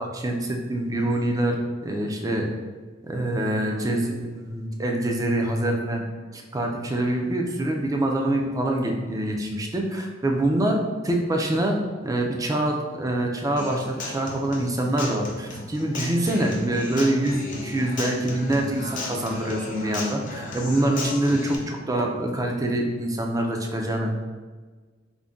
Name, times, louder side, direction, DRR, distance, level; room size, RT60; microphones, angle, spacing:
voice 1, 0.0-2.5 3.0-6.0 6.3-24.1, right 1 dB, 20° right, 1 dB, 0.4 m, -25 dB
Human voice / Acoustic guitar, 13.6-21.5, left 2 dB, 45° left, 0.6 m, -35 dB
3.8 x 2.2 x 3.5 m, 1.4 s
head